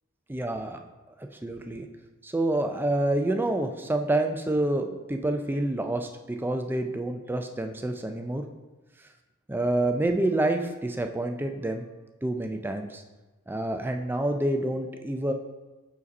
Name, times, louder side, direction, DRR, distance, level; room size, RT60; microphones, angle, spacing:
voice 1, 0.3-0.8 1.2-1.8 2.2-8.4 9.5-11.9 12.2-13.0 13.5-15.3, right 1 dB, 10° right, 5 dB, 0.3 m, -28 dB
5.0 x 4.1 x 5.2 m, 1.2 s
head